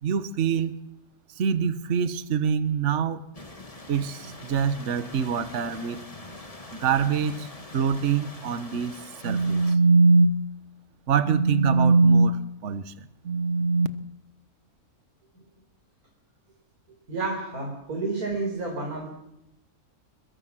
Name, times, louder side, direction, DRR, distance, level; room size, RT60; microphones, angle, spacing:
voice 1, 0.0-0.7 1.4-3.2 3.9-6.0 6.7-7.5 7.7-9.0 9.2-10.4 11.1-13.9, right 4 dB, 55° right, 12 dB, 1.4 m, -23 dB
sound 1, 3.3-9.8, left 2 dB, 25° left, 1.9 m, -43 dB
voice 2, 17.1-19.1, right 3 dB, 70° right, 1 dB, 5.3 m, -30 dB
29.5 x 22.0 x 6.2 m, 0.84 s
omnidirectional pair, 1.6 m